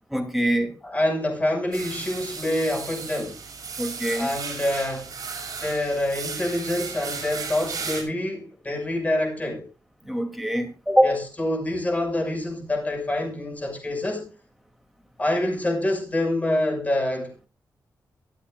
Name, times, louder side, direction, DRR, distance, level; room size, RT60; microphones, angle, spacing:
voice 1, 0.1-0.7 3.8-4.3 10.0-11.1, equal, ahead, 2.8 m, -23 dB
voice 2, 0.8-3.4 4.1-5.1 5.6-9.6 11.0-14.3 15.2-17.5, left 1 dB, 25° left, 6.2 m, -26 dB
sound 1, 1.7-8.0, right 5 dB, 65° right, 5.8 m, -35 dB
25.0 x 8.5 x 2.5 m
wide cardioid pair, 125°, 7 cm